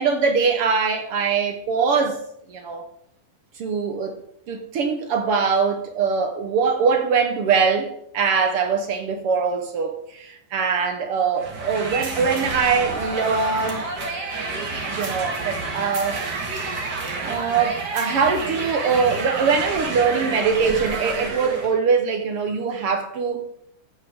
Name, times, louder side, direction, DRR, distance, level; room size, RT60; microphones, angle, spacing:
voice 1, 0.0-2.2 2.5-2.8 3.6-4.2 4.5-13.8 14.8-16.2 17.2-23.4, right 5 dB, 60° right, 1.6 m, -22 dB
sound 1, 11.4-21.8, right 3 dB, 40° right, 1.8 m, -29 dB
14.0 x 9.0 x 3.6 m
omnidirectional pair, 3.7 m